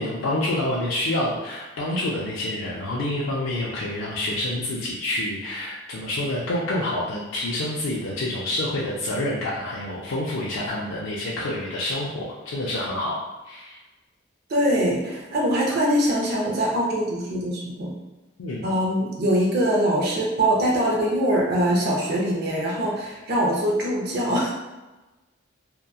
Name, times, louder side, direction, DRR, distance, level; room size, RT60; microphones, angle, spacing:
voice 1, 0.0-13.8 18.4-18.6, left 1 dB, 90° left, -5 dB, 0.4 m, -27 dB
voice 2, 14.5-17.9 18.6-24.5, right 1 dB, 50° right, -3 dB, 0.5 m, -23 dB
2.7 x 2.2 x 2.3 m, 1.1 s
head